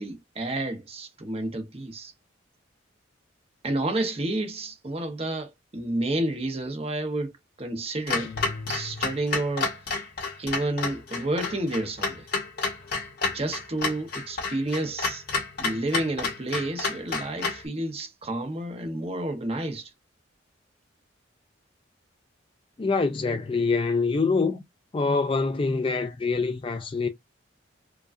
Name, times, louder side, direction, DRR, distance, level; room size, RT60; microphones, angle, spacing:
voice 1, 0.0-2.1 3.6-8.3 8.7-9.7 10.4-12.3 13.3-15.2 15.6-19.9, right 1 dB, 30° right, 0.8 m, -30 dB
sound 1, 8.1-9.5, left 3 dB, 75° left, 1.1 m, -40 dB
Clock, 8.1-17.7, left 4 dB, 50° left, 1.3 m, -30 dB
voice 2, 22.8-24.6 24.9-27.1, left 4 dB, 25° left, 0.3 m, -25 dB
4.7 x 2.3 x 2.5 m
head